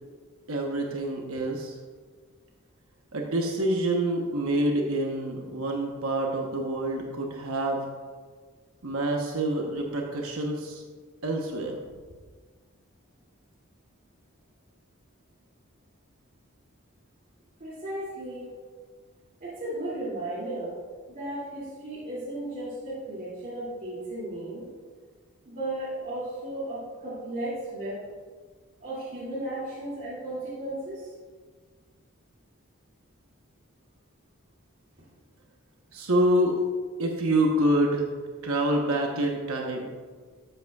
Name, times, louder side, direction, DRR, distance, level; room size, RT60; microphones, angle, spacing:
voice 1, 0.5-1.7 3.1-7.8 8.8-10.8 11.2-11.8 35.9-36.6 37.0-38.1 38.4-39.9, right 1 dB, 75° right, 1 dB, 1.0 m, -26 dB
voice 2, 17.6-18.5 19.4-20.7 21.1-24.7 25.5-28.0 28.8-31.1, right 1 dB, 40° right, -9 dB, 2.5 m, -35 dB
13.5 x 7.8 x 2.3 m, 1.5 s
head